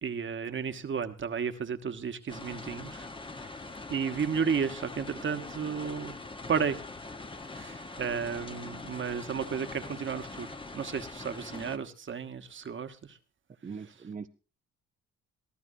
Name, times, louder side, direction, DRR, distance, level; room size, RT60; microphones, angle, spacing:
voice 1, 0.0-3.1 3.4-3.5 3.9-6.1 6.5-6.8 7.5-13.2, right 6 dB, 40° right, 1.2 m, -33 dB
sound 1, 2.3-11.8, left 3 dB, 15° left, 1.0 m, -43 dB
voice 2, 13.6-14.3, right 5 dB, 25° right, 0.6 m, -40 dB
22.5 x 14.0 x 2.6 m
cardioid pair, 90°, 30 cm